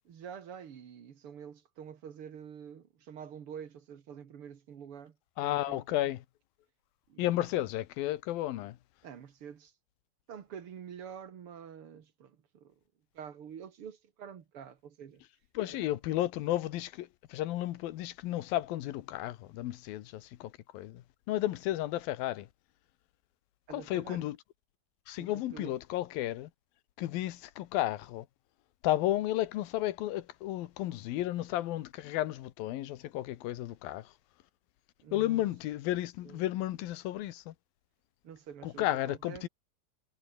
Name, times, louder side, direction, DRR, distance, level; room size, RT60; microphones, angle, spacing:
voice 1, 0.1-5.2 5.4-6.1 7.1-7.4 9.0-9.7 10.3-12.7 13.1-15.2 15.7-16.0 23.7-24.3 25.2-25.7 35.0-35.4 36.2-36.5 38.2-39.5, right 8 dB, 45° right, 2.0 m, -47 dB
voice 2, 5.4-6.2 7.2-8.8 15.5-22.5 23.7-24.4 25.1-26.5 27.0-28.3 28.8-34.1 35.1-37.5 38.6-39.5, left 14 dB, 75° left, 2.8 m, -33 dB
omnidirectional pair, 4.3 m